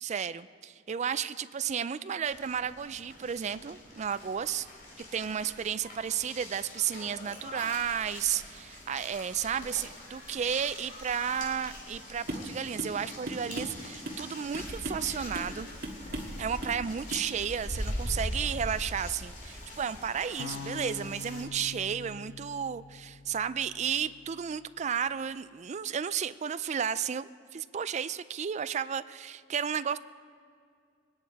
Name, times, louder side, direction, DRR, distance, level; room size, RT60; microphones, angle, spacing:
voice 1, 0.0-4.7 5.1-15.7 16.4-30.0, right 8 dB, 35° right, 14 dB, 0.4 m, -33 dB
sound 1, 2.2-21.4, left 1 dB, 45° left, 2.6 m, -42 dB
sound 2, 12.3-12.5 12.8-13.0 13.3-14.2 14.5-15.1 15.3-15.6 15.8-16.4 16.6-16.8 17.1-17.3, right 1 dB, 55° right, 1.7 m, -37 dB
sound 3, 20.4-24.5, left 4 dB, 80° left, 0.8 m, -44 dB
21.5 x 9.7 x 4.7 m, 2.3 s
head